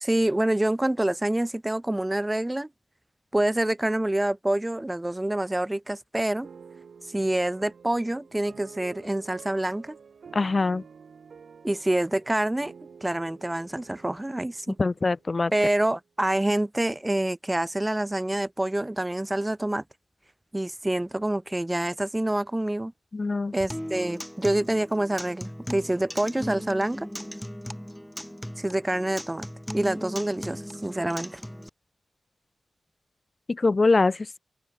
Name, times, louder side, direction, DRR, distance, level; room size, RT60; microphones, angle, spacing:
voice 1, 0.0-2.7 3.3-6.5 7.1-10.0 11.6-12.7 13.0-14.8 15.5-19.8 20.5-22.9 23.5-27.1 28.6-29.5 29.7-31.4, right 1 dB, 15° right, 2.5 m, -27 dB
sound 1, 6.4-15.6, right 6 dB, 75° right, 7.2 m, -49 dB
voice 2, 10.3-10.8 14.8-15.5 23.1-23.5 33.5-34.4, left 3 dB, 40° left, 0.4 m, -23 dB
Acoustic guitar, 23.7-31.7, equal, ahead, 2.6 m, -38 dB
wide cardioid pair, 90°, 0 cm